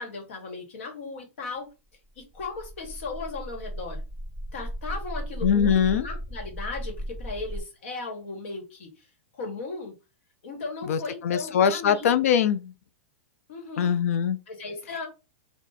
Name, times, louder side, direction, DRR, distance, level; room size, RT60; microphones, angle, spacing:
voice 1, 0.0-1.7 2.2-4.0 4.5-9.1 9.3-9.9 10.4-12.1 13.5-13.9 14.5-15.1, left 3 dB, 60° left, 1.3 m, -36 dB
sound 1, 2.1-7.6, equal, 15° left, 0.9 m, -36 dB
voice 2, 5.4-6.1 10.8-12.7 13.8-14.4, left 8 dB, 85° left, 0.4 m, -22 dB
2.6 x 2.3 x 4.0 m
supercardioid pair, 175°, 8 cm